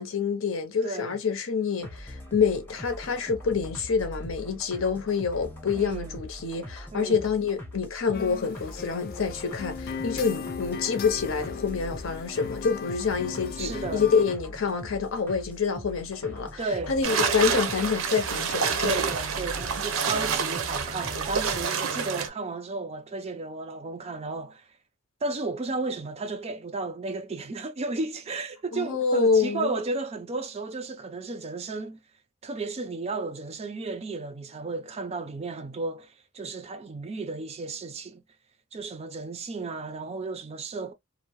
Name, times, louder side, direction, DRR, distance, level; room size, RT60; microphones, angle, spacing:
voice 1, 0.0-19.0 28.7-29.7, left 5 dB, 75° left, 0.7 m, -27 dB
voice 2, 0.8-1.2 5.8-6.2 6.9-7.3 13.6-14.1 16.6-16.9 18.8-24.7 25.2-32.0 32.4-38.2 38.7-40.9, right 3 dB, 30° right, 0.4 m, -33 dB
sound 1, 1.8-21.6, equal, 10° left, 0.7 m, -42 dB
sound 2, 8.1-14.4, left 6 dB, 45° left, 0.4 m, -37 dB
sound 3, 17.0-22.3, right 6 dB, 85° right, 0.6 m, -28 dB
2.6 x 2.0 x 2.9 m
head